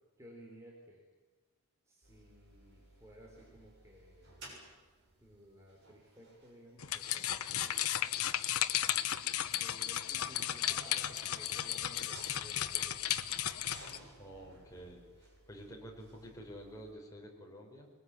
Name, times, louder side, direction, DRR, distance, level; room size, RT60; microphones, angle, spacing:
voice 1, 0.2-1.0 1.9-4.3 5.2-8.4 9.1-13.5, equal, 15° right, -2 dB, 4.0 m, -57 dB
sound 1, 2.0-16.9, right 2 dB, 50° right, 7.0 m, -58 dB
sound 2, 6.8-14.0, left 11 dB, 85° left, 1.1 m, -34 dB
voice 2, 14.2-17.9, equal, 15° left, -1 dB, 5.2 m, -50 dB
22.5 x 21.0 x 9.6 m, 1.3 s
head